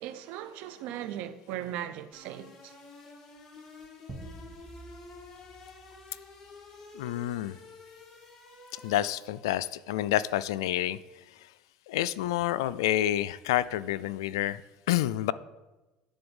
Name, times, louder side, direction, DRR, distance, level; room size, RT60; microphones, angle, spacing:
voice 1, 0.0-2.7, right 11 dB, 70° right, 0.7 m, -38 dB
sound 1, 2.1-9.5, left 3 dB, 20° left, 1.8 m, -50 dB
sound 2, 4.1-6.9, right 2 dB, 10° right, 1.5 m, -48 dB
voice 2, 6.9-7.6 8.7-11.0 11.9-14.6 14.9-15.3, left 13 dB, 90° left, 0.3 m, -28 dB
10.0 x 3.9 x 7.1 m
supercardioid pair, 95°, 2 cm